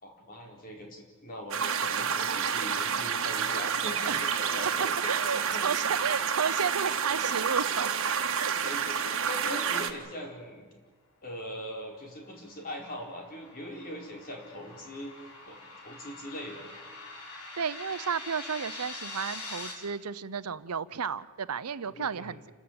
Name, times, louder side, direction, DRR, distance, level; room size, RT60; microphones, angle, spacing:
voice 1, 0.0-5.7 8.6-10.7 11.2-15.1 15.5-15.6 15.8-16.7 21.8-22.4, equal, 40° left, 1 dB, 4.4 m, -41 dB
sound 1, 1.5-9.9, right 7 dB, 60° right, 1.7 m, -29 dB
voice 2, 5.1-7.9 8.4-8.5 17.3-22.5, right 6 dB, 85° right, 15 dB, 0.7 m, -33 dB
sound 2, 12.0-19.7, left 2 dB, 85° left, 4.9 m, -44 dB
28.5 x 14.0 x 8.8 m, 1.4 s
head